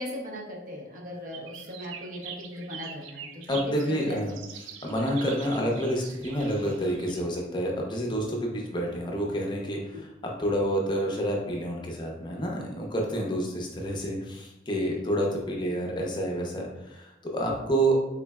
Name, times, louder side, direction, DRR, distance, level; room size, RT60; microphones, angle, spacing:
voice 1, 0.0-4.2 9.9-10.0 14.8-15.0, left 1 dB, 45° right, -2 dB, 0.6 m, -38 dB
sound 1, 1.3-7.2, right 7 dB, 85° right, 0.3 m, -44 dB
voice 2, 3.5-4.3 4.8-18.0, right 1 dB, 25° left, 0 dB, 0.5 m, -29 dB
3.7 x 3.1 x 2.3 m, 0.94 s
head